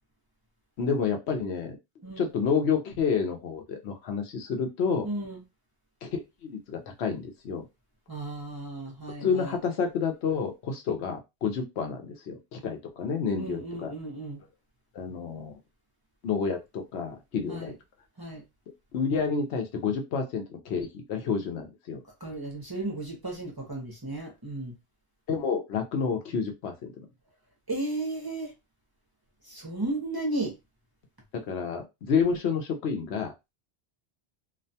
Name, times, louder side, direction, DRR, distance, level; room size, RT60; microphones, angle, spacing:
voice 1, 0.8-1.7 2.2-5.1 6.0-7.7 9.2-13.9 14.9-15.5 16.2-17.7 18.9-22.0 25.3-26.9 31.5-33.3, left 6 dB, 90° left, 1.0 m, -29 dB
voice 2, 5.0-5.4 8.1-9.6 13.4-14.4 17.5-17.7 18.2-18.4 22.2-24.7 27.7-28.5 29.4-30.5, right 2 dB, 25° right, 0.6 m, -34 dB
2.5 x 2.2 x 2.6 m
omnidirectional pair, 1.1 m